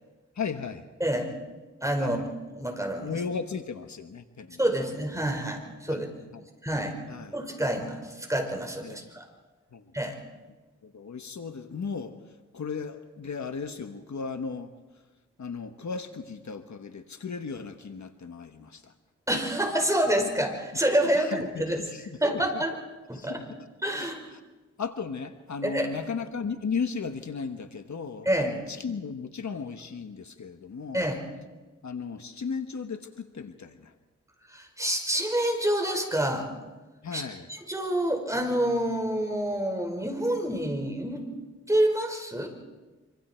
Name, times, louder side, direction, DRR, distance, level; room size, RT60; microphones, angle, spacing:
voice 1, 0.3-0.9 2.0-2.3 3.0-4.6 5.9-6.4 7.1-7.4 8.8-9.0 9.7-9.8 10.8-12.1 12.5-14.7 15.4-18.9 21.1-22.0 22.3-22.6 23.1-23.6 24.0-24.4 24.8-31.1 31.8-33.9 37.0-37.5, left 5 dB, 70° left, 7 dB, 1.3 m, -36 dB
voice 2, 1.8-2.2 2.6-3.1 4.6-6.1 6.6-6.9 7.3-9.2 9.9-10.2 19.3-21.8 22.2-22.7 23.1-23.4 23.8-24.2 25.6-25.9 28.2-28.6 30.9-31.2 34.5-36.5 37.1-37.2 37.5-41.2 41.7-42.5, right 1 dB, 10° right, 3 dB, 5.0 m, -27 dB
26.0 x 25.5 x 4.5 m, 1.2 s
wide cardioid pair, 70°, 30 cm